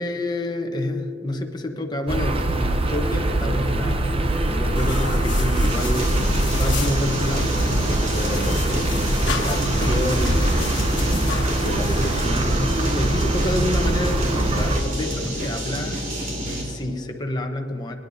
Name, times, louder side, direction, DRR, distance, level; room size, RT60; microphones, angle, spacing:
voice 1, 0.0-6.1 6.5-8.9 9.3-16.0 16.4-18.0, left 1 dB, 25° left, 3 dB, 1.0 m, -29 dB
sound 1, 2.1-14.8, right 1 dB, 30° right, 0.7 m, -23 dB
sound 2, 4.8-12.3, left 3 dB, 75° left, 1.2 m, -31 dB
sound 3, 5.6-16.8, equal, 50° right, 2.6 m, -29 dB
23.5 x 10.5 x 2.7 m, 2.5 s
head